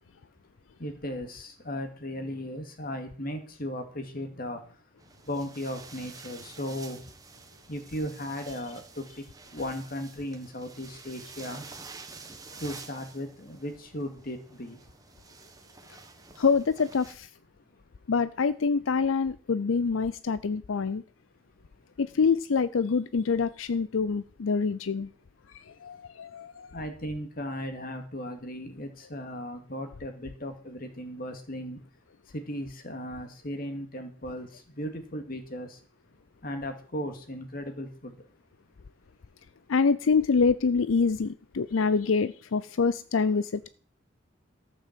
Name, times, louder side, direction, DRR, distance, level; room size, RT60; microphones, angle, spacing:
voice 1, 0.8-4.6 5.3-7.0 7.7-9.0 9.5-11.6 12.6-14.8 26.7-31.8 32.3-34.5 34.8-35.7 36.4-38.1, equal, 45° left, 2.2 m, -36 dB
sound 1, 5.0-17.1, right 4 dB, 20° right, 1.3 m, -49 dB
voice 2, 16.4-17.3 18.1-21.0 22.0-25.1 25.5-26.7 39.7-43.7, left 5 dB, 90° left, 0.5 m, -26 dB
14.0 x 6.3 x 7.5 m
head